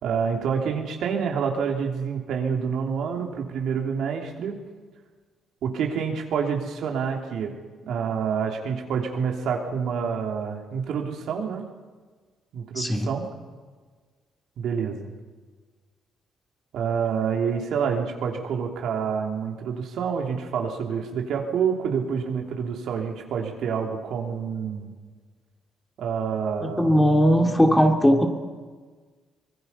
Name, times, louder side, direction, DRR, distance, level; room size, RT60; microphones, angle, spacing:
voice 1, 0.0-4.6 5.6-7.5 7.9-11.6 12.5-13.3 14.6-15.1 16.7-24.9 26.0-27.2, right 6 dB, 75° right, 2 dB, 3.2 m, -27 dB
voice 2, 12.8-13.1 26.6-28.3, equal, 10° left, 4 dB, 2.9 m, -19 dB
24.5 x 20.5 x 5.7 m, 1.4 s
cardioid pair, 80°, 0 cm